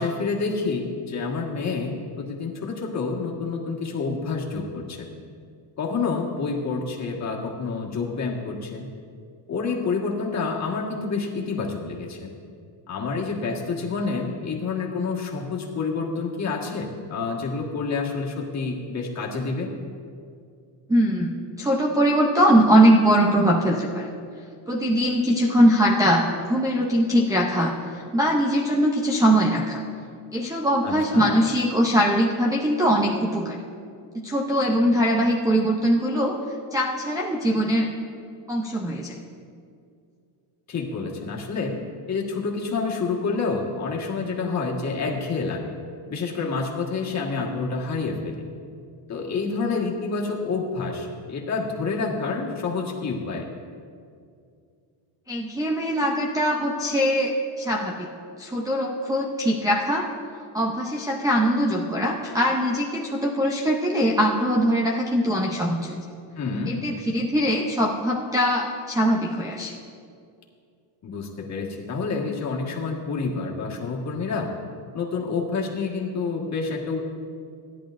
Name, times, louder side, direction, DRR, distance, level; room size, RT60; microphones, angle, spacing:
voice 1, 0.0-5.1 5.8-8.9 9.5-12.3 12.9-19.7 30.8-31.3 40.7-41.7 42.1-45.7 46.1-48.4 49.1-53.4 66.4-66.7 71.0-74.5 74.9-77.0, left 4 dB, 30° left, -2 dB, 1.6 m, -28 dB
voice 2, 20.9-24.1 24.7-29.8 30.3-33.6 34.1-36.4 36.7-37.9 38.5-39.2 55.3-58.1 58.4-60.1 60.5-66.0 66.7-69.7, equal, 5° right, -1 dB, 0.5 m, -22 dB
16.5 x 10.5 x 2.6 m, 2.3 s
cardioid pair, 140°, 50 cm